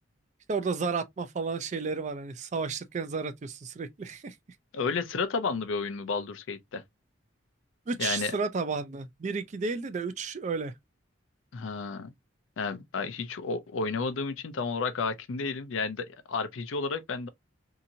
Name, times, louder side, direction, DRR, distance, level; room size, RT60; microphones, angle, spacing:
voice 1, 0.5-4.4 7.9-10.7, right 4 dB, 35° right, 0.3 m, -32 dB
voice 2, 4.7-6.8 8.0-8.3 11.5-12.1 12.6-17.3, left 4 dB, 75° left, 0.5 m, -32 dB
2.8 x 2.5 x 2.6 m
head